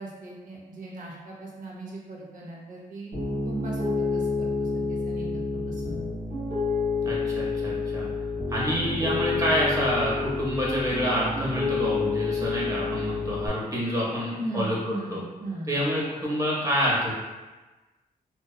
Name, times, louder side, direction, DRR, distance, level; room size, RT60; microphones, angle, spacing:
voice 1, 0.0-3.1 3.4-5.2 5.5-6.1 14.4-15.7, right 2 dB, 60° right, -3 dB, 0.7 m, -38 dB
Piano, 3.1-13.5, left 4 dB, 85° right, 1.3 m, -29 dB
voice 2, 7.0-8.1 8.5-15.2 15.7-17.1, equal, 20° right, -5 dB, 0.7 m, -27 dB
2.8 x 2.1 x 2.3 m, 1.2 s
wide cardioid pair, 115°, 15 cm